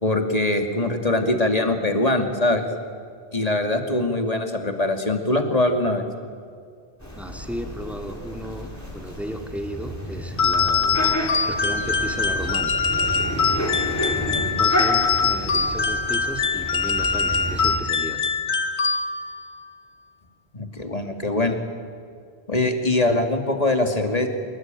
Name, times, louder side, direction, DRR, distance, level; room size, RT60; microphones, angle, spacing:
voice 1, 0.0-2.6 3.3-6.0 20.5-21.6 22.5-24.3, left 2 dB, 35° left, 4 dB, 2.7 m, -22 dB
sound 1, 7.0-17.8, equal, 15° left, 4.7 m, -31 dB
voice 2, 7.2-11.1 11.4-12.8 14.5-18.2, equal, ahead, 4 dB, 2.4 m, -34 dB
sound 2, 10.4-19.4, left 5 dB, 80° left, 1.5 m, -23 dB
26.5 x 22.5 x 9.2 m, 2.2 s
omnidirectional pair, 1.1 m